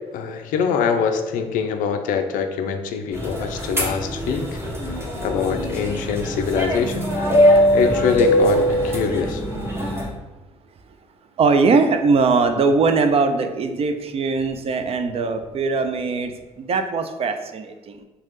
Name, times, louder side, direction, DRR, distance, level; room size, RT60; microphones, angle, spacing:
voice 1, 0.1-4.6 5.2-7.1 7.7-9.4, left 6 dB, 60° left, 6 dB, 0.4 m, -23 dB
sound 1, 3.1-10.1, equal, 15° right, 1.0 m, -21 dB
voice 2, 11.4-18.0, right 4 dB, 40° right, 7 dB, 0.4 m, -21 dB
3.0 x 2.3 x 3.1 m, 1.1 s
hypercardioid pair, 45°, 15 cm